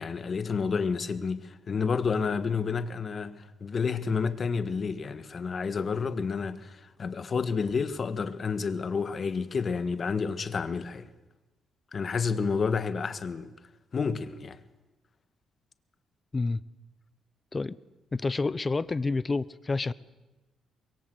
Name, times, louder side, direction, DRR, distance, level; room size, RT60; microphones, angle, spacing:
voice 1, 0.0-11.1 11.9-13.5 13.9-14.6, left 5 dB, 45° left, 1.6 m, -30 dB
voice 2, 18.1-19.9, left 3 dB, 25° left, 0.8 m, -28 dB
24.5 x 22.5 x 8.0 m
cardioid pair, 90°, 0 cm